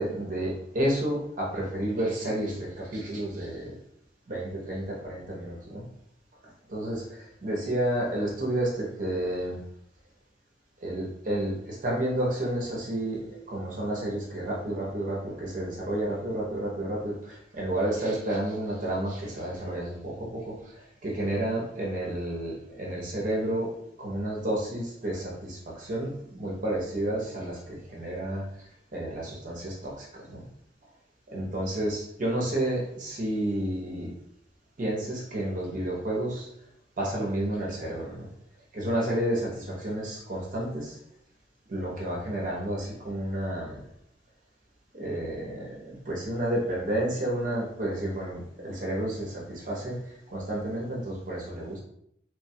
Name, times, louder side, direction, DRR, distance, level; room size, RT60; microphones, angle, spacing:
voice 1, 0.0-3.7 4.3-5.8 6.7-9.6 10.8-13.2 13.5-28.4 28.9-30.4 31.3-34.1 34.8-36.5 37.0-38.3 38.7-41.0 41.7-43.8 44.9-50.0 50.3-51.8, right 1 dB, 45° right, -3 dB, 0.7 m, -31 dB
3.2 x 2.2 x 2.7 m, 0.72 s
head